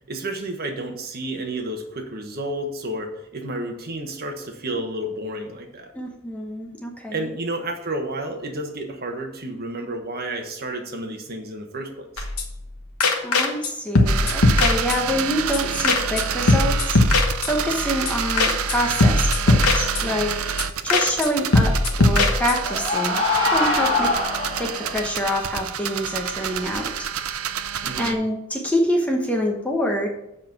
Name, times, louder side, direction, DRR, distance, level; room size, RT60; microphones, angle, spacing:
voice 1, 0.1-5.9 7.1-12.3 27.8-28.2, right 1 dB, 45° right, 4 dB, 1.2 m, -31 dB
voice 2, 5.9-7.3 13.2-17.0 17.5-20.3 20.8-24.1 24.6-27.4 28.0-30.1, equal, 5° left, 1 dB, 1.0 m, -26 dB
sound 1, 12.2-12.7 13.0-13.7 14.0-15.3 15.5-15.6 15.8-16.2 16.5-17.8 18.1-18.2 18.4-18.8 19.0-20.3 20.6-20.7 20.9-21.3 21.5-22.8, left 2 dB, 80° left, 1.2 m, -20 dB
sound 2, 14.1-28.1, right 7 dB, 80° right, 0.6 m, -28 dB
sound 3, 22.0-25.0, left 3 dB, 25° left, 3.7 m, -24 dB
7.4 x 5.4 x 5.9 m, 0.85 s
head